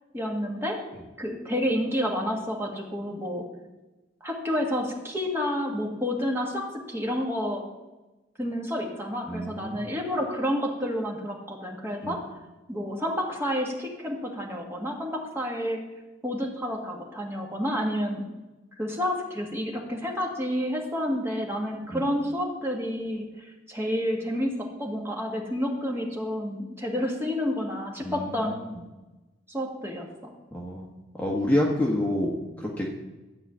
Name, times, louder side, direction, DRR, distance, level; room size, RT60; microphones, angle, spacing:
voice 1, 0.1-0.8 1.2-3.4 4.2-7.6 8.4-12.2 12.7-15.8 16.2-18.2 18.8-24.5 24.8-28.7 29.5-30.3, equal, 15° right, -1 dB, 1.8 m, -29 dB
voice 2, 9.3-9.9 12.0-12.1 21.9-22.0 28.0-28.8 30.5-30.9 31.1-32.9, left 1 dB, 10° left, -3 dB, 1.2 m, -28 dB
12.5 x 4.9 x 8.6 m, 1.1 s
head